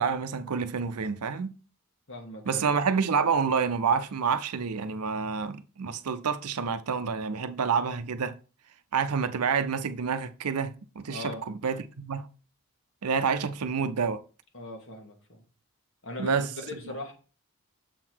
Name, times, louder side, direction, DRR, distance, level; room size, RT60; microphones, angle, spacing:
voice 1, 0.0-1.5 2.5-8.3 8.9-12.3 13.0-14.2 16.2-16.5, right 6 dB, 90° right, 0.6 m, -28 dB
voice 2, 2.1-2.7 11.1-11.4 14.5-15.4 16.0-17.1, left 1 dB, 60° left, 1.7 m, -39 dB
7.1 x 3.9 x 4.6 m
head